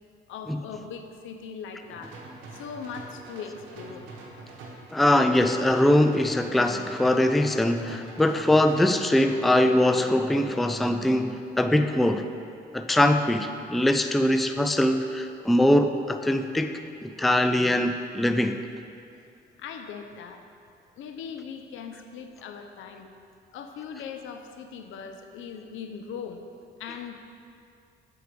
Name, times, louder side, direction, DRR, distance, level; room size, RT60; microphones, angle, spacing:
voice 1, 0.3-2.2 2.5-4.1 19.6-20.4 21.0-23.1 23.5-26.4 26.8-27.1, left 6 dB, 80° left, 6 dB, 0.7 m, -39 dB
sound 1, 1.8-4.9 5.4-9.6, right 3 dB, 80° right, 1.2 m, -44 dB
voice 2, 4.9-12.3 12.7-16.7 17.0-18.6, left 1 dB, ahead, 7 dB, 0.3 m, -22 dB
7.8 x 4.7 x 5.1 m, 2.4 s
cardioid pair, 90°, 20 cm